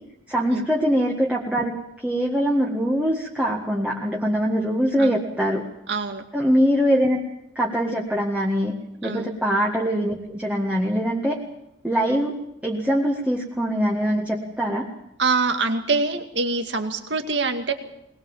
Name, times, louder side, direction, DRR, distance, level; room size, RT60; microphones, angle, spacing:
voice 1, 0.3-1.8 2.0-5.7 6.3-7.2 7.6-8.8 9.0-11.4 11.8-12.4 12.6-14.9, equal, 5° right, -2 dB, 1.8 m, -23 dB
voice 2, 5.9-6.2 9.0-9.3 15.2-17.7, right 3 dB, 60° right, 6 dB, 2.2 m, -24 dB
21.0 x 20.5 x 7.4 m, 0.80 s
head